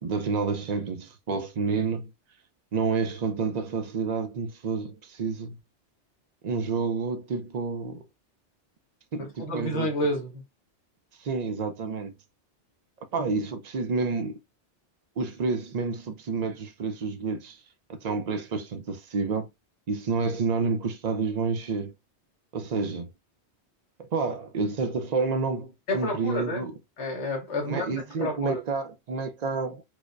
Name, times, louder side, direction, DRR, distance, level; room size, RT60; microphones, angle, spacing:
voice 1, 0.0-2.1 2.7-5.6 6.4-8.0 9.1-9.9 11.2-12.1 13.1-14.3 15.2-17.6 17.9-19.5 19.9-21.9 22.5-23.1 24.0-26.7 27.6-29.8, right 4 dB, 55° right, 0.5 m, -29 dB
voice 2, 9.2-10.4 25.9-26.7 27.0-27.9 28.2-28.6, left 1 dB, 70° left, 1.4 m, -29 dB
4.7 x 2.1 x 2.5 m
omnidirectional pair, 1.2 m